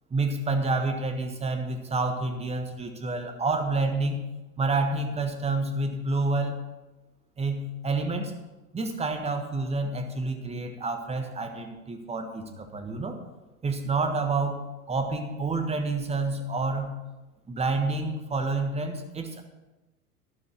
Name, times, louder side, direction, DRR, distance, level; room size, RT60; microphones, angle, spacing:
voice 1, 0.1-4.2 4.6-6.6 7.4-8.3 8.7-13.2 13.6-16.9 17.5-19.4, right 3 dB, 15° right, 5 dB, 1.5 m, -28 dB
12.0 x 11.5 x 4.6 m, 1.1 s
figure-of-eight pair, 85°, 45 cm